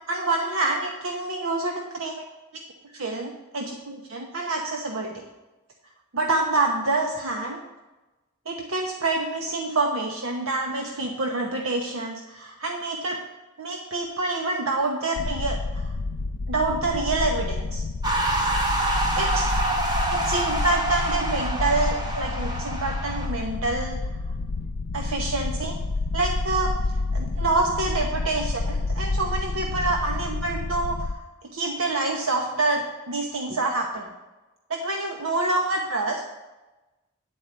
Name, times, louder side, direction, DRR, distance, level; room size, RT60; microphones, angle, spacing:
voice 1, 0.0-2.1 3.0-5.3 6.1-7.6 8.5-13.2 13.6-15.9 16.5-17.8 19.2-19.5 20.1-24.0 24.9-25.8 26.1-26.7 27.1-31.1 31.5-34.1 34.7-36.2, right 2 dB, 70° right, 1 dB, 0.9 m, -27 dB
sound 1, 15.2-31.1, left 3 dB, 55° left, 0.4 m, -29 dB
sound 2, 18.0-23.3, right 2 dB, 20° right, 1.2 m, -27 dB
8.9 x 4.7 x 7.6 m, 1.1 s
head